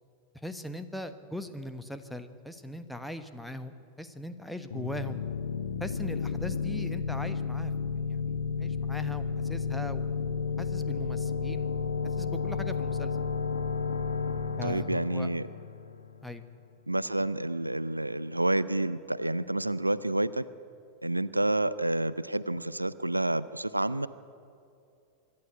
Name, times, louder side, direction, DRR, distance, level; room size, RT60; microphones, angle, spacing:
voice 1, 0.4-5.2 5.8-7.7 8.1-8.3 8.6-11.7 12.0-13.2 14.6-15.3 16.2-16.4, left 1 dB, ahead, 8 dB, 1.2 m, -40 dB
sound 1, 4.7-16.3, left 5 dB, 70° left, 1.3 m, -32 dB
voice 2, 14.6-15.5 16.9-20.5 21.0-24.1, right 1 dB, 85° right, 18 dB, 0.4 m, -29 dB
25.0 x 11.5 x 9.4 m, 2.6 s
figure-of-eight pair, 90°, 0 cm